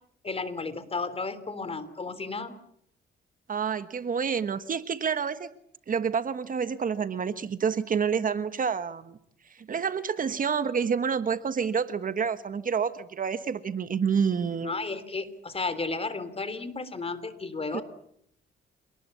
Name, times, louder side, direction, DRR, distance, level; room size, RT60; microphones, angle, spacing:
voice 1, 0.2-2.6 14.6-17.8, left 3 dB, 30° left, 13 dB, 3.3 m, -33 dB
voice 2, 3.5-5.5 5.9-9.2 9.6-14.7 17.7-17.8, right 6 dB, 45° right, 12 dB, 1.4 m, -28 dB
27.5 x 19.5 x 8.3 m, 0.72 s
cardioid pair, 90°, 20 cm